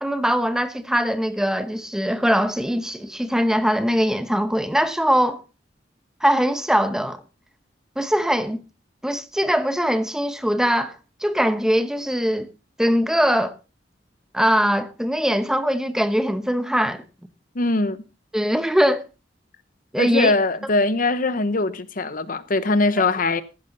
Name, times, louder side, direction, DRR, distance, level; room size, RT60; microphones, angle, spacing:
voice 1, 0.0-5.4 6.2-7.2 8.0-8.6 9.0-11.0 11.2-12.5 12.8-13.6 14.3-17.0 18.3-19.0 19.9-20.3, equal, 5° right, 0.9 m, -21 dB
voice 2, 17.5-18.0 20.0-23.4, left 2 dB, 50° left, 0.9 m, -21 dB
15.0 x 11.5 x 3.9 m
head